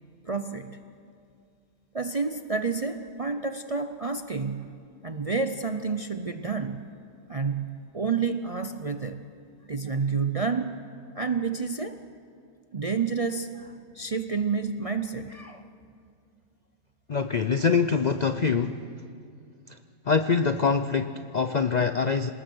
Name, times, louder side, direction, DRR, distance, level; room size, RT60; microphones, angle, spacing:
voice 1, 0.3-0.8 1.9-4.8 5.0-6.8 7.3-9.2 9.7-10.8 11.2-12.0 12.7-15.6, right 5 dB, 45° right, 8 dB, 0.4 m, -29 dB
voice 2, 17.1-18.8 20.1-22.3, left 5 dB, 75° left, 10 dB, 0.4 m, -24 dB
27.0 x 19.5 x 6.2 m, 2.3 s
omnidirectional pair, 1.6 m